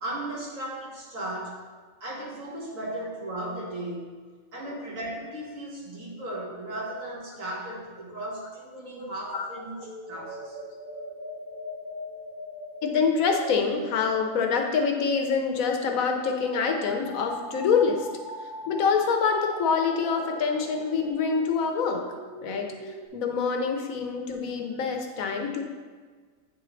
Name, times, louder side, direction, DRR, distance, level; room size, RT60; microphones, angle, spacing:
voice 1, 0.0-1.6 2.0-4.1 4.5-10.6 24.7-24.8, right 1 dB, 75° right, -5 dB, 1.9 m, -36 dB
sound 1, 9.8-23.1, equal, 50° right, 0.8 m, -41 dB
voice 2, 12.8-18.1 18.7-22.0 22.4-25.6, left 5 dB, 85° left, 3 dB, 1.2 m, -26 dB
8.8 x 3.9 x 3.2 m, 1.5 s
omnidirectional pair, 1.4 m